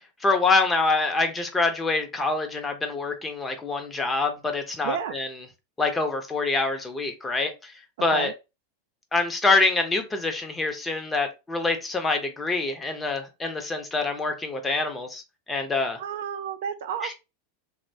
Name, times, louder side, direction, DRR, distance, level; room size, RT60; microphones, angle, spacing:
voice 1, 0.2-5.3 5.8-7.7 8.0-8.3 9.1-15.2 15.5-16.0 17.0-17.1, left 3 dB, 15° left, 0.6 m, -25 dB
voice 2, 4.8-5.2 8.0-8.3 16.0-17.1, right 8 dB, 65° right, 0.3 m, -31 dB
2.9 x 2.1 x 2.7 m
hypercardioid pair, 95°, 0 cm